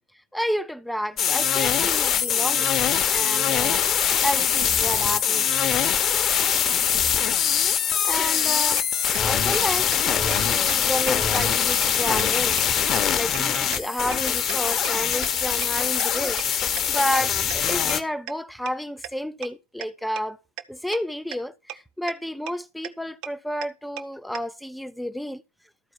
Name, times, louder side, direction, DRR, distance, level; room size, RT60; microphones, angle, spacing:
voice 1, 0.3-2.7 3.1-3.8 4.2-5.5 8.0-8.8 9.2-12.6 13.1-20.4 20.7-25.4, equal, ahead, 0.6 m, -30 dB
sound 1, 1.2-18.0, left 8 dB, 25° left, 1.0 m, -23 dB
sound 2, 8.8-8.9 9.1-9.2 9.5-9.6 9.9-10.0 10.3-10.4 10.7-10.8 11.1-11.2 11.4-11.5 11.8-11.9 12.2-12.3 12.6-12.7 13.0-13.1 13.3-13.4 13.7-13.8 14.1-14.2 14.5-14.6 14.8-14.9 15.2-15.3 15.6-15.7 16.0-16.1 16.4-16.5 16.8-16.9 17.1-17.2 17.5-17.6 17.9-18.0 18.3-18.4 18.7-18.8 19.0-19.1 19.4-19.5 19.8-19.9 20.2-20.3 20.6-20.7 20.9-21.0 21.3-21.4 21.7-21.8 22.1-22.2 22.5-22.6 22.8-22.9 23.2-23.3 23.6-23.7 24.0-24.1 24.3-24.4, right 13 dB, 40° right, 0.9 m, -34 dB
13.5 x 4.6 x 6.2 m
figure-of-eight pair, 90°, 0 cm